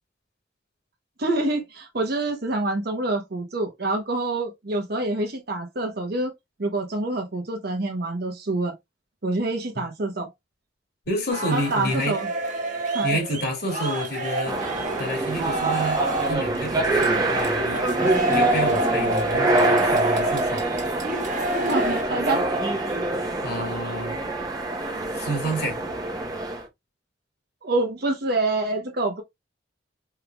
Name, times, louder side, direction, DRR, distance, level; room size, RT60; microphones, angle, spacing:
voice 1, 1.2-6.3 6.6-8.7 9.2-10.3 11.5-12.3 12.9-13.2 21.7-22.4 27.6-29.2, right 2 dB, 60° right, 0.9 m, -26 dB
voice 2, 11.1-12.2 13.0-14.6 15.0-20.6 23.4-24.2 25.1-25.8, equal, 60° left, 2.2 m, -29 dB
sound 1, 11.3-22.0, right 2 dB, 45° right, 1.4 m, -28 dB
sound 2, 14.4-26.6, right 2 dB, 20° right, 1.1 m, -25 dB
4.6 x 3.5 x 2.3 m
head